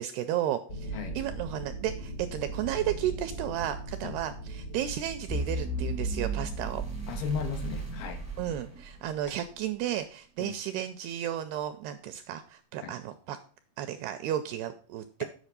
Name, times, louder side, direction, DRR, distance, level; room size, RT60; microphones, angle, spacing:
voice 1, 0.0-6.8 8.4-13.4 13.8-15.2, right 11 dB, 85° right, 2.3 m, -33 dB
sound 1, 0.7-8.5, right 2 dB, 50° left, 1.0 m, -41 dB
sound 2, 5.3-9.4, right 2 dB, 10° right, 0.7 m, -34 dB
voice 2, 7.1-8.3 10.4-10.6 12.8-13.0, left 7 dB, 75° left, 2.4 m, -35 dB
8.3 x 5.8 x 6.7 m
omnidirectional pair, 5.1 m